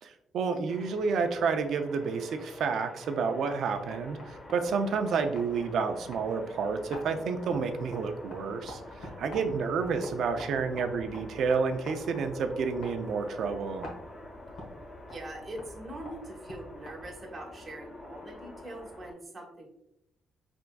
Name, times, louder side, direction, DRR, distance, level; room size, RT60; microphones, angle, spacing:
voice 1, 0.0-13.9, right 5 dB, 70° right, 6 dB, 0.5 m, -30 dB
sound 1, 0.7-19.1, left 1 dB, 45° left, 1.4 m, -47 dB
sound 2, 3.6-17.4, equal, 65° left, 1.3 m, -49 dB
voice 2, 15.1-19.7, right 1 dB, 30° right, -1 dB, 1.2 m, -43 dB
4.8 x 3.4 x 2.3 m, 0.82 s
cardioid pair, 90°, 0 cm